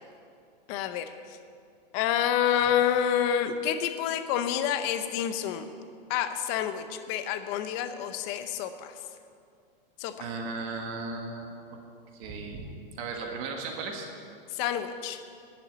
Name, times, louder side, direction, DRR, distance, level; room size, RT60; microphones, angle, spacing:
voice 1, 0.7-1.4 1.9-5.7 6.1-8.9 10.0-10.3 14.5-15.2, left 9 dB, 30° left, 10 dB, 0.7 m, -28 dB
voice 2, 10.2-11.5 12.2-14.1, right 3 dB, 35° right, 2 dB, 1.6 m, -36 dB
11.0 x 7.1 x 9.7 m, 2.4 s
supercardioid pair, 160°, 29 cm